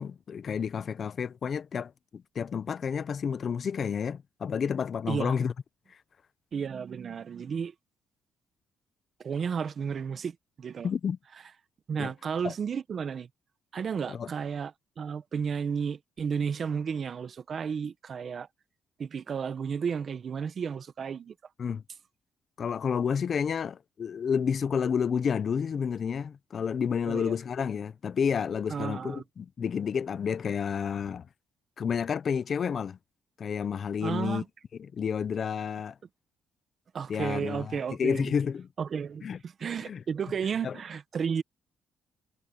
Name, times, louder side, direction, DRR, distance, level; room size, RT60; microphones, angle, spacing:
voice 1, 0.0-5.5 10.8-11.2 12.0-12.1 12.4-12.5 14.1-14.3 21.6-21.8 22.6-31.3 31.8-33.0 33.4-34.4 34.8-36.0 37.1-38.7 39.2-39.4 39.9-40.0 40.6-40.8, left 7 dB, 50° left, 0.9 m, -30 dB
voice 2, 6.5-7.7 9.2-10.9 11.9-13.3 13.7-14.7 15.0-18.5 19.0-21.3 27.1-27.4 28.7-29.2 34.0-34.4 36.9-38.2 38.8-41.4, right 6 dB, 50° right, 1.4 m, -33 dB
cardioid pair, 90°, 0 cm